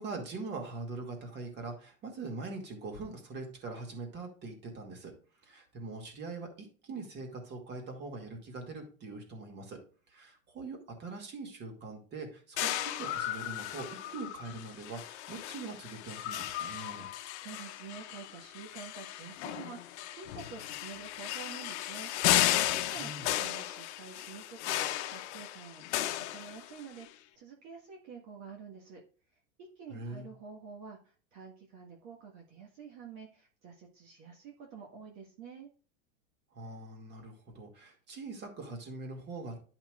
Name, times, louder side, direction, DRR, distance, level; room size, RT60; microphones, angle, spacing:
voice 1, 0.0-5.2 5.4-9.8 10.1-17.1 23.0-23.2 29.9-30.3 36.5-39.6, right 3 dB, 25° right, 3 dB, 2.2 m, -42 dB
sound 1, 12.6-27.0, left 14 dB, 60° left, 0.8 m, -35 dB
voice 2, 17.4-22.1 22.4-29.0 29.6-35.7, right 6 dB, 45° right, 0 dB, 1.8 m, -48 dB
10.5 x 5.8 x 2.4 m, 0.39 s
supercardioid pair, 150°, 39 cm